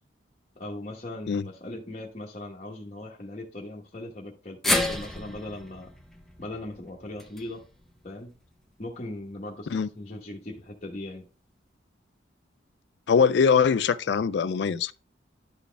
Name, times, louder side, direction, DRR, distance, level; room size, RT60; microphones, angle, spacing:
voice 1, 0.6-5.9 6.4-7.6 8.0-8.3 8.8-11.3, left 1 dB, 35° left, 1.1 m, -39 dB
sound 1, 4.6-8.9 9.3-9.4 10.5-10.6, left 1 dB, ahead, 0.8 m, -32 dB
voice 2, 13.1-14.9, left 6 dB, 65° left, 0.4 m, -22 dB
11.5 x 4.1 x 3.4 m
head